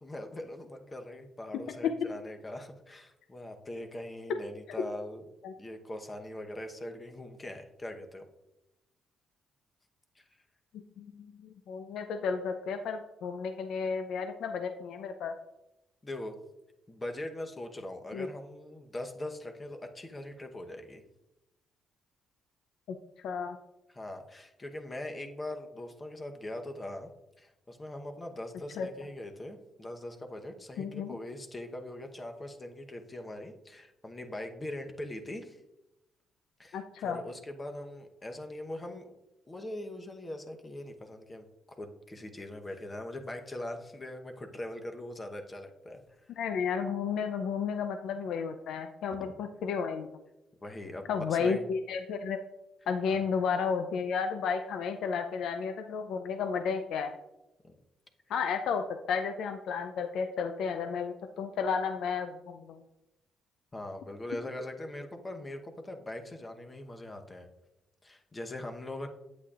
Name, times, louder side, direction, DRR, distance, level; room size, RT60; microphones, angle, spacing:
voice 1, 0.0-5.2 5.6-8.3 10.1-10.3 16.0-16.4 16.9-21.0 23.9-27.1 27.4-35.6 36.6-39.1 39.5-41.4 41.8-46.4 49.4-49.5 50.6-51.7 53.1-53.2 57.6-57.7 63.7-67.5 68.0-69.1, left 1 dB, 25° left, 5 dB, 1.0 m, -41 dB
voice 2, 10.7-11.3 11.7-15.3 18.1-18.3 22.9-23.0 23.2-23.6 28.8-28.9 30.8-31.2 36.7-37.2 46.4-50.1 51.1-52.4 52.9-57.1 58.3-62.8, left 6 dB, 80° left, 6 dB, 0.5 m, -32 dB
8.3 x 8.3 x 2.5 m, 0.91 s
cardioid pair, 90°, 0 cm